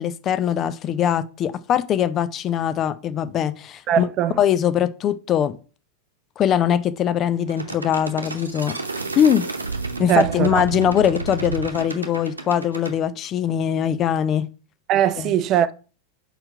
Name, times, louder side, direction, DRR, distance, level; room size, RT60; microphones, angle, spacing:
voice 1, 0.0-4.1 4.4-5.6 6.4-8.7 9.2-9.5 10.0-14.5 15.2-15.3, left 9 dB, 30° left, 0.5 m, -21 dB
voice 2, 3.9-4.4 10.1-10.6 14.9-15.7, right 10 dB, 35° right, 0.4 m, -20 dB
sound 1, 7.5-12.9, right 3 dB, 80° right, 0.9 m, -30 dB
4.9 x 4.4 x 4.8 m
figure-of-eight pair, 90°, 0 cm